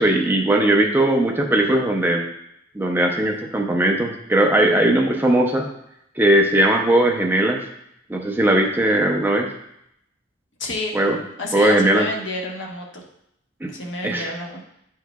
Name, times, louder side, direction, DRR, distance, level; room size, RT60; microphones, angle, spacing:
voice 1, 0.0-2.3 2.7-5.7 6.2-7.6 8.1-9.5 10.9-11.2 11.5-12.1 13.6-13.7 14.0-14.3, right 1 dB, 10° right, 2 dB, 0.5 m, -19 dB
voice 2, 10.6-10.9 11.4-13.0 13.7-14.6, left 2 dB, 75° left, 0 dB, 1.1 m, -29 dB
9.1 x 4.7 x 2.2 m, 0.77 s
head